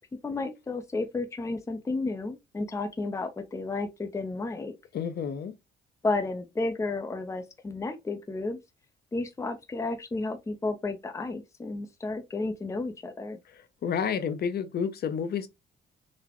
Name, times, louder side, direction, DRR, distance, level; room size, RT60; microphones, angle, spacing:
voice 1, 0.2-4.7 6.0-8.6 9.1-13.4, left 3 dB, 15° left, 0.5 m, -32 dB
voice 2, 4.9-5.5 13.5-15.5, left 7 dB, 55° left, 0.6 m, -30 dB
4.0 x 2.1 x 2.9 m
cardioid pair, 90°, 20 cm